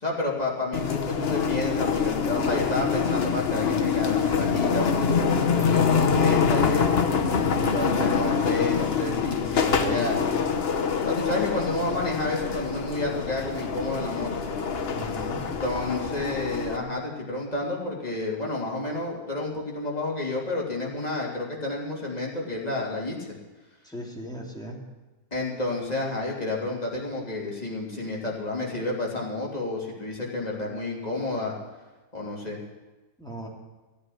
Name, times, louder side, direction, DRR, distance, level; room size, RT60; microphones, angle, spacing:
voice 1, 0.0-7.0 7.7-10.3 11.0-14.6 15.6-23.3 25.3-31.5 32.1-32.6, left 2 dB, 30° left, -3 dB, 3.1 m, -30 dB
sound 1, 0.7-16.8, left 6 dB, 50° left, 1.2 m, -25 dB
voice 2, 7.4-7.8 14.9-15.4 23.8-24.8 33.2-33.5, equal, 5° left, -2 dB, 2.8 m, -37 dB
14.5 x 8.5 x 9.9 m, 1.2 s
omnidirectional pair, 1.5 m